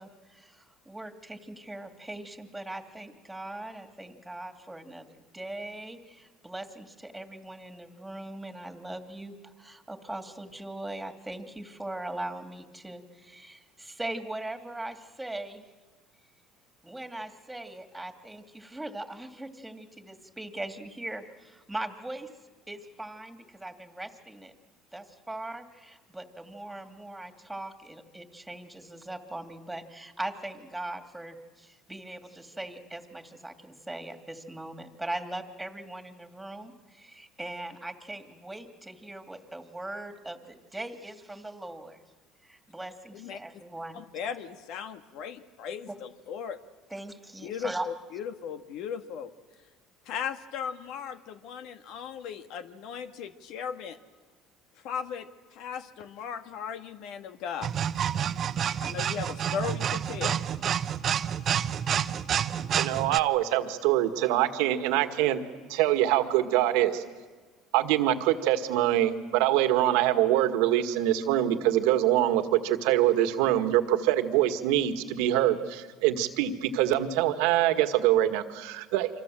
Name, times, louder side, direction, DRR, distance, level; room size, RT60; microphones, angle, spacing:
voice 1, 0.0-15.6 16.8-22.3 22.7-24.5 24.9-42.0 42.4-44.0 45.9-46.0 46.9-47.9, right 1 dB, 5° right, 6 dB, 2.5 m, -40 dB
voice 2, 43.9-46.6 47.4-49.3 50.1-54.0 54.8-55.3 55.5-57.7 58.8-60.4, left 7 dB, 70° left, 8 dB, 1.7 m, -37 dB
sound 1, 57.6-63.2, right 9 dB, 45° right, 0.9 m, -29 dB
voice 3, 62.8-65.4 65.7-67.0 67.7-79.1, right 13 dB, 80° right, 8 dB, 1.8 m, -24 dB
28.5 x 25.5 x 7.7 m, 1.4 s
supercardioid pair, 100°, 0 cm